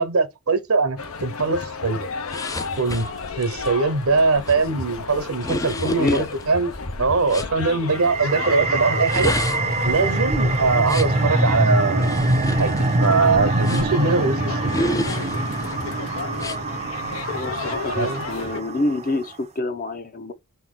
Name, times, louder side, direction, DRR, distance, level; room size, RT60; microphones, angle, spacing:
voice 1, 0.0-2.1 2.8-3.1 3.4-6.7 7.0-9.3 9.8-14.8 17.9-18.2, right 4 dB, 80° right, 1.0 m, -22 dB
sound 1, 1.0-18.6, left 4 dB, 80° left, 0.8 m, -33 dB
sound 2, 2.3-7.5 8.9-11.2 12.0-14.1 14.7-15.7 16.3-16.6, left 1 dB, 15° left, 0.4 m, -32 dB
voice 2, 5.8-6.3 17.3-20.3, left 2 dB, 40° left, 0.7 m, -27 dB
sound 3, 7.9-19.1, right 2 dB, 30° right, 0.5 m, -24 dB
4.6 x 2.9 x 3.7 m
head